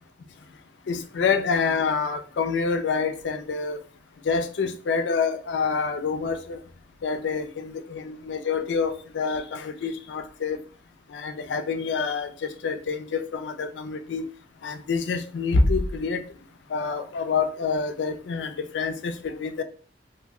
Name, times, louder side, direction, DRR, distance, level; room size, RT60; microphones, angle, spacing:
voice 1, 0.9-3.8 4.2-6.6 7.0-10.6 11.1-14.2 14.6-16.3 16.7-19.6, left 4 dB, 85° left, 0.4 m, -27 dB
2.7 x 2.1 x 3.5 m
head